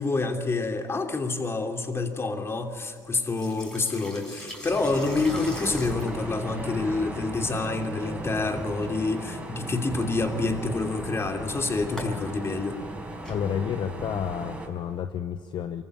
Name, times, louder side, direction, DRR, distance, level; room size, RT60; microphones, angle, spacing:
voice 1, 0.0-12.8, left 3 dB, 30° left, 4 dB, 2.9 m, -28 dB
sound 1, 2.6-15.0, left 1 dB, 5° left, 5.5 m, -44 dB
sound 2, 4.7-14.7, right 1 dB, 10° right, 5.0 m, -36 dB
voice 2, 13.3-15.8, left 8 dB, 60° left, 8 dB, 1.0 m, -30 dB
24.5 x 14.5 x 8.9 m, 2.2 s
supercardioid pair, 80°, 9 cm